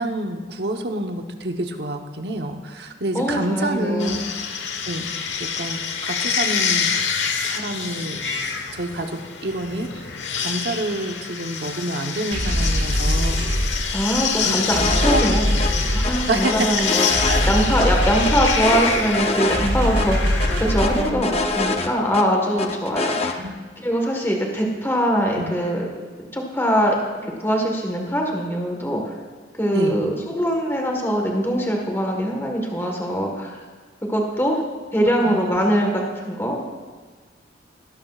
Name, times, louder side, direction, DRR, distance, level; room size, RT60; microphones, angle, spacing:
voice 1, 0.0-4.2 4.9-5.1 5.4-6.9 7.4-8.2 8.7-13.5 14.4-14.7 15.1-15.2 15.5-15.7 16.3-16.7 17.3-17.4 20.9-21.3 23.4-23.5 25.4-25.5 29.7-30.0 35.2-35.6, right 1 dB, 60° right, 4 dB, 1.0 m, -28 dB
voice 2, 3.1-4.2 13.9-23.5 23.8-25.9 26.3-26.9 27.2-29.1 29.5-33.6 34.0-34.6 34.9-36.6, equal, 15° left, 0 dB, 1.4 m, -22 dB
sound 1, 4.0-21.1, left 6 dB, 85° left, 1.1 m, -27 dB
sound 2, 12.3-21.9, equal, 80° right, 3.9 m, -24 dB
sound 3, 14.8-15.3 15.6-15.7 16.0-17.9 18.2-19.7 20.0-20.1 20.4-22.2 22.6-23.3, left 3 dB, 35° left, 0.7 m, -25 dB
19.5 x 12.0 x 2.4 m, 1.5 s
head